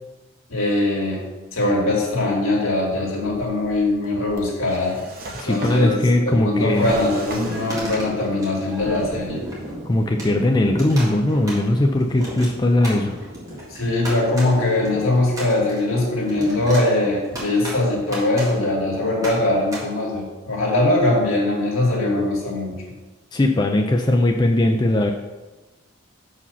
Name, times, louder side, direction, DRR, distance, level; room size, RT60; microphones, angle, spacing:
voice 1, 0.5-5.0 5.5-6.0 6.3-9.4 13.7-22.8, left 2 dB, 75° left, -2 dB, 2.1 m, -21 dB
Drawer open or close, 3.8-8.4 8.7-9.6, right 1 dB, 45° right, 1.1 m, -37 dB
voice 2, 5.3-6.9 9.9-13.1 23.3-25.1, left 1 dB, 20° left, 3 dB, 0.4 m, -19 dB
sound 1, 6.5-19.8, right 1 dB, 15° right, 1.9 m, -34 dB
6.8 x 5.0 x 5.6 m, 1.2 s
head